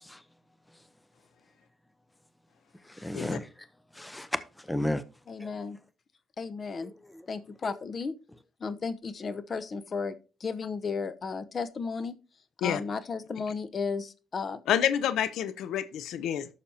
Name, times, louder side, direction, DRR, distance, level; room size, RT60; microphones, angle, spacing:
voice 1, 2.9-3.5 3.9-5.0 5.4-5.5 7.1-7.2 7.6-7.7, left 1 dB, 10° left, 0.7 m, -33 dB
voice 2, 5.3-5.8 6.4-6.9 7.3-8.1 8.6-12.2 12.6-14.6, left 5 dB, 45° left, 0.8 m, -34 dB
voice 3, 14.7-16.5, left 10 dB, 80° left, 0.6 m, -28 dB
11.5 x 6.8 x 2.8 m
cardioid pair, 90°, 0 cm